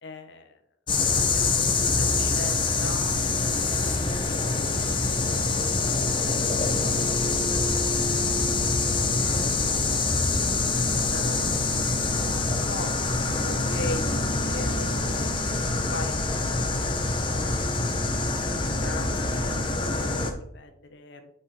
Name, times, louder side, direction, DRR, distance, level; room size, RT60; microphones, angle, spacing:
voice 1, 0.0-0.5 1.1-5.5 5.8-6.1 6.6-6.8 8.0-8.2 8.5-10.2 11.1-11.8 12.6-12.9 13.2-16.2 16.5-16.8 17.3-21.3, left 2 dB, 55° left, 6 dB, 0.9 m, -41 dB
sound 1, 0.9-20.3, left 3 dB, 25° left, 0.7 m, -25 dB
7.4 x 4.9 x 4.3 m, 0.70 s
head